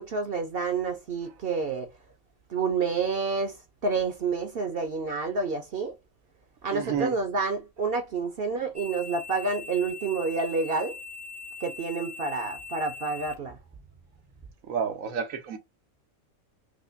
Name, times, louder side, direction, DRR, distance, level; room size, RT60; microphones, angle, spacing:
voice 1, 0.0-1.9 2.5-3.6 3.8-5.9 6.6-11.0 11.6-13.6, right 4 dB, 55° right, 0.8 m, -29 dB
voice 2, 6.7-7.1 14.7-15.6, right 7 dB, 85° right, 1.2 m, -30 dB
sound 1, 8.7-14.5, left 4 dB, 10° right, 0.4 m, -42 dB
4.9 x 2.1 x 2.5 m
omnidirectional pair, 1.4 m